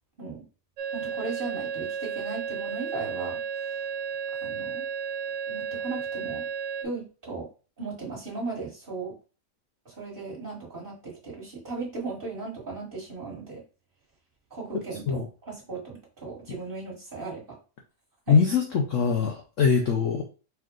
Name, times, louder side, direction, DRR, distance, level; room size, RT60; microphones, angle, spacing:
sound 1, 0.8-6.9, right 6 dB, 80° right, 1.2 m, -33 dB
voice 1, 0.9-3.8 4.4-4.9 5.5-6.5 6.8-7.5 7.8-9.2 9.8-13.6 14.5-17.6 18.3-18.4, right 3 dB, 30° right, -5 dB, 1.7 m, -37 dB
voice 2, 18.3-20.2, left 6 dB, 65° left, 2 dB, 0.8 m, -22 dB
4.5 x 2.5 x 3.7 m, 0.35 s
omnidirectional pair, 1.9 m